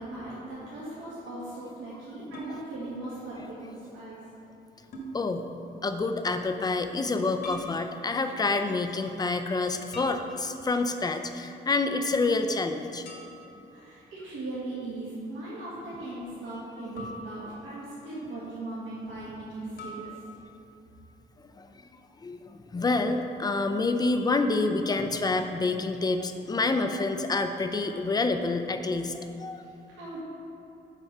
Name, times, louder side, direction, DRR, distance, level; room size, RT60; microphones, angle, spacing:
voice 1, 0.0-4.2 13.7-20.2 29.6-30.2, right 2 dB, 75° right, -9 dB, 1.6 m, -39 dB
sound 1, 2.3-2.6 4.9-5.1 7.4-7.7 9.9-10.8 13.0-13.7 17.0-17.9 19.8-20.2, right 1 dB, 60° left, 1.5 m, -42 dB
voice 2, 5.1-5.5 5.8-13.0 21.5-21.7 22.2-29.6, left 3 dB, 20° left, 7 dB, 0.4 m, -28 dB
5.8 x 4.6 x 5.5 m, 2.9 s
cardioid pair, 90°, 20 cm